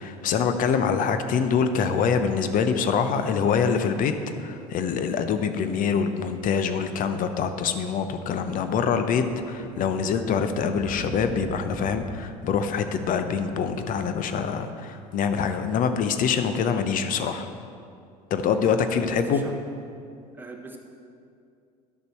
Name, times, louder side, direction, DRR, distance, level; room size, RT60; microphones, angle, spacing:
voice 1, 0.0-4.1 4.4-17.5 18.3-19.4, left 6 dB, 40° left, 9 dB, 0.7 m, -25 dB
Thunder, 8.5-14.9 15.9-16.1, right 2 dB, 40° right, 1.4 m, -43 dB
voice 2, 18.9-19.6 20.3-20.8, right 2 dB, 10° right, 0 dB, 1.3 m, -39 dB
11.0 x 6.8 x 4.5 m, 2.4 s
figure-of-eight pair, 70°, 21 cm